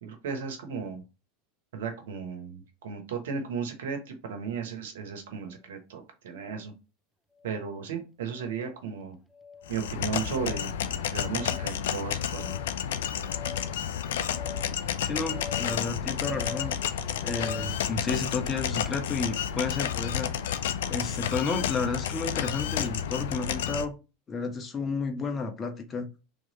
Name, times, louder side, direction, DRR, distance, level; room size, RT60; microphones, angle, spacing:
voice 1, 0.0-1.0 1.7-6.7 7.4-9.2 9.7-12.5, right 6 dB, 75° right, 6 dB, 1.2 m, -35 dB
sound 1, 6.4-6.7 7.4-7.7 8.3-8.7 9.3-9.8 10.3-10.7 11.3-17.9, left 5 dB, 5° left, 0.4 m, -44 dB
sound 2, 9.7-23.8, left 9 dB, 75° left, 0.4 m, -31 dB
voice 2, 15.0-16.7 17.2-20.3 20.9-23.9 24.3-26.1, left 4 dB, 30° left, 6 dB, 1.0 m, -31 dB
3.5 x 3.1 x 4.1 m, 0.29 s
hypercardioid pair, 90°, 0 cm